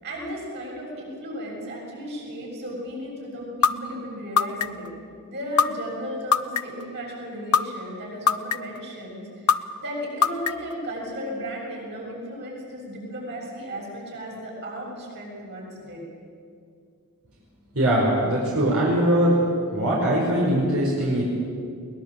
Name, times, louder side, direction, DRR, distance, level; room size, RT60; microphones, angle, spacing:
voice 1, 0.0-4.9 5.3-16.0, equal, 50° right, -2 dB, 7.1 m, -35 dB
sound 1, 3.6-3.7 4.4-4.9 5.6-5.7 6.3-6.8 7.5-7.6 8.3-8.8 9.5-9.6 10.2-10.7, left 7 dB, 90° left, 0.7 m, -19 dB
voice 2, 17.7-19.4 19.7-21.2, right 1 dB, 80° right, -4 dB, 5.1 m, -21 dB
21.5 x 20.0 x 7.7 m, 2.3 s
head